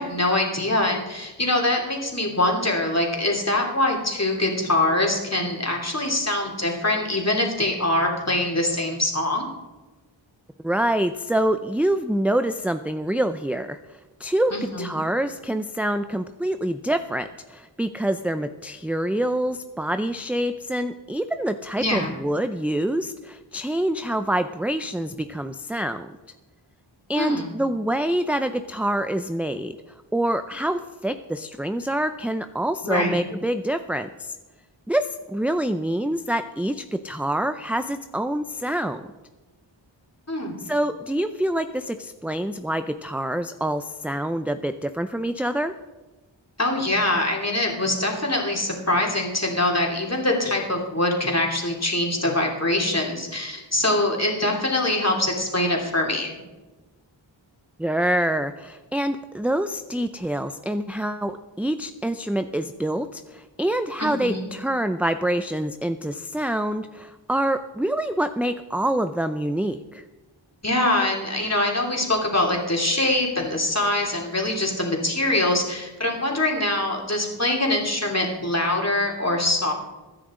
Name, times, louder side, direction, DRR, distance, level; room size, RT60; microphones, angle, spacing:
voice 1, 0.0-9.5 14.5-14.9 21.8-22.1 27.2-27.5 32.8-33.2 40.3-40.6 46.6-56.3 64.0-64.4 70.6-79.7, left 1 dB, 35° left, 0 dB, 3.0 m, -23 dB
voice 2, 10.6-26.1 27.1-29.8 30.1-34.4 34.9-39.0 40.6-45.7 57.8-70.0, right 1 dB, 5° right, 9 dB, 0.5 m, -26 dB
23.0 x 10.0 x 3.8 m, 1.2 s
wide cardioid pair, 50°, 47 cm